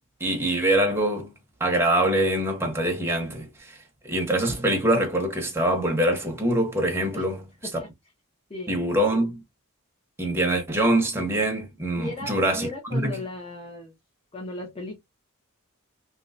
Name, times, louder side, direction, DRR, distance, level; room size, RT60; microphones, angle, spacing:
voice 1, 0.2-1.3 1.6-3.8 4.0-7.4 8.7-9.4 10.2-13.1, right 1 dB, 10° right, 1.0 m, -24 dB
voice 2, 8.5-8.8 11.9-14.0 14.3-15.0, left 2 dB, 25° left, 1.1 m, -36 dB
3.0 x 3.0 x 2.6 m
head